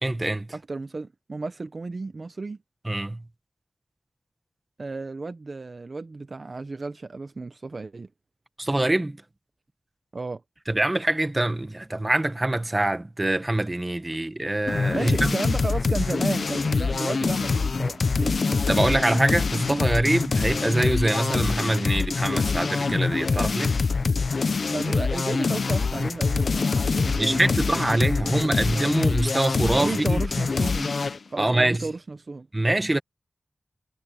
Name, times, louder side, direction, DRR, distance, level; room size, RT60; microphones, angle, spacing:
voice 1, 0.0-0.5 2.8-3.2 8.6-9.2 10.7-15.4 18.7-23.8 27.1-30.2 31.4-31.9 32.5-33.0, right 1 dB, 25° right, 1.5 m, -24 dB
voice 2, 0.5-2.6 4.8-8.1 10.1-10.4 14.9-18.8 23.9-24.4 24.7-28.6 29.7-31.0 31.3-32.5, right 3 dB, 50° right, 0.9 m, -33 dB
sound 1, 14.7-31.2, left 4 dB, 70° left, 0.6 m, -25 dB
wide cardioid pair, 100°, 0 cm